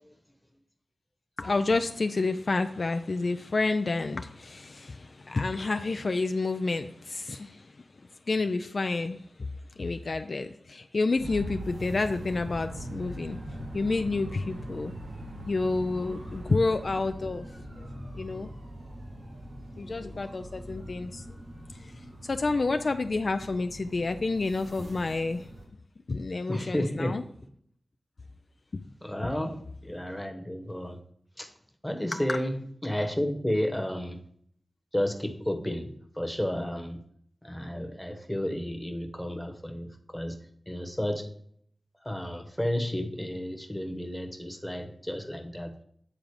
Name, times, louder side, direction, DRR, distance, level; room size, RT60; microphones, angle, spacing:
voice 1, 1.4-7.8 8.3-9.2 9.8-13.4 13.7-14.9 15.5-17.5 17.8-17.9 18.1-18.5 19.8-21.2 21.8-21.9 22.2-25.5 26.1-27.2 28.7-28.8 29.2-29.3 32.1-32.4, left 3 dB, 55° left, 8 dB, 0.4 m, -29 dB
sound 1, 11.2-25.6, equal, 70° right, 2.9 m, -43 dB
sound 2, 11.2-17.1, right 2 dB, 90° right, 1.0 m, -43 dB
voice 2, 26.5-27.2 29.0-31.0 31.4-31.5 31.8-34.2 34.9-37.0 37.4-40.4 40.7-41.3 42.0-45.8, left 1 dB, 5° left, 4 dB, 1.1 m, -32 dB
8.7 x 3.8 x 4.8 m, 0.66 s
cardioid pair, 60°, 0 cm